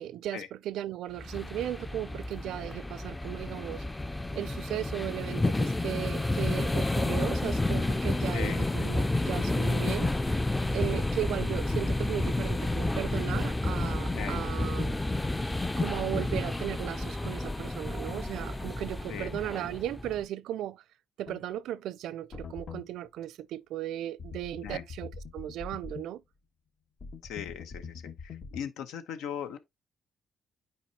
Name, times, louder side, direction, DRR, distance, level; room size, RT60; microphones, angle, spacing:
voice 1, 0.0-3.8 4.3-10.1 10.7-15.0 15.8-20.8 21.2-26.2, right 12 dB, 85° right, 0.4 m, -36 dB
sound 1, 1.2-20.2, left 2 dB, 15° left, 0.5 m, -30 dB
voice 2, 8.3-8.7 14.1-14.4 19.1-19.3 24.6-24.8 27.2-27.8 28.5-29.6, left 8 dB, 90° left, 1.0 m, -38 dB
sound 2, 21.3-21.4 22.3-22.9 24.2-26.1 27.0-28.6, left 5 dB, 55° left, 1.4 m, -43 dB
9.4 x 4.6 x 2.8 m
cardioid pair, 90°, 0 cm